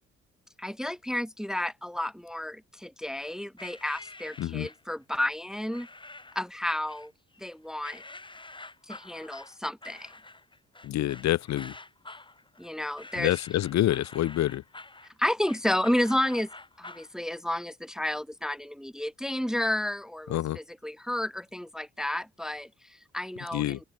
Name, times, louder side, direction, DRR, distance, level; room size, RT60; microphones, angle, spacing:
voice 1, 0.6-5.9 6.3-7.1 7.4-8.0 8.9-10.1 12.6-13.3 15.2-16.5 16.8-23.8, left 1 dB, ahead, 0.6 m, -31 dB
sound 1, 3.6-4.9 5.7-6.5 6.9-7.5 7.8-17.1, left 2 dB, 15° left, 2.6 m, -47 dB
voice 2, 4.4-4.7 10.8-11.7 13.2-14.6 20.3-20.6 23.5-23.8, left 13 dB, 65° left, 0.7 m, -27 dB
open air
cardioid pair, 90°, 30 cm